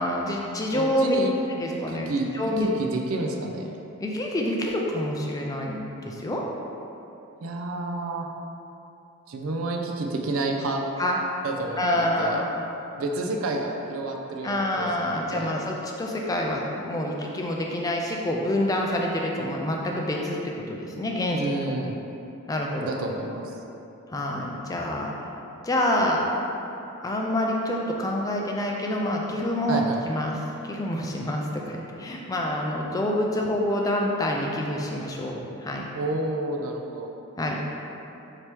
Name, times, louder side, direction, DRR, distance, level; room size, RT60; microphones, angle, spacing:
voice 1, 0.0-1.2 1.5-2.1 2.3-2.7 4.0-6.4 11.0-11.2 11.8-12.6 14.4-20.4 20.7-21.4 22.5-22.9 24.1-25.1 25.6-26.2 27.0-30.3 30.7-35.8 37.4-37.6, left 1 dB, 15° left, -1 dB, 0.3 m, -27 dB
voice 2, 0.7-1.3 1.7-2.3 2.6-3.8 7.4-8.3 9.3-10.8 11.4-12.4 13.0-15.6 21.3-22.0 22.8-23.6 29.7-30.0 35.9-37.1, right 2 dB, 70° right, 2 dB, 0.4 m, -30 dB
3.3 x 2.9 x 4.4 m, 2.9 s
head